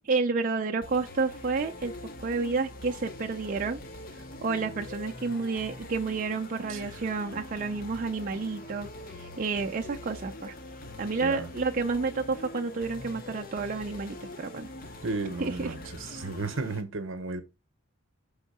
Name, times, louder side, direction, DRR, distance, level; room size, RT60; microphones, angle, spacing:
voice 1, 0.0-1.9 2.2-3.8 4.4-8.9 9.2-10.5 11.0-14.7 15.4-15.8, right 4 dB, 40° right, 0.4 m, -30 dB
sound 1, 0.8-16.8, left 1 dB, 40° left, 0.8 m, -43 dB
voice 2, 15.0-17.4, right 3 dB, 65° right, 0.8 m, -33 dB
5.5 x 3.6 x 5.4 m
head